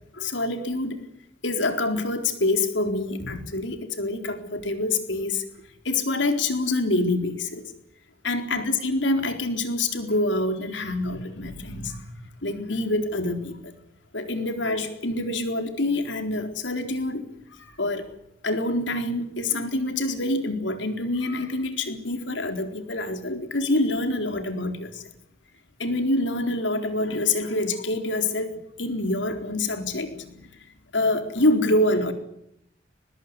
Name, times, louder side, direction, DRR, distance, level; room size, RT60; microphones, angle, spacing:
voice 1, 0.2-1.0 1.4-5.4 5.9-7.6 8.2-12.0 12.4-13.5 14.1-17.2 17.6-18.1 18.4-25.0 25.8-28.5 28.8-30.3 30.9-32.1, left 2 dB, 75° left, 6 dB, 4.0 m, -26 dB
22.5 x 20.5 x 9.7 m, 0.77 s
head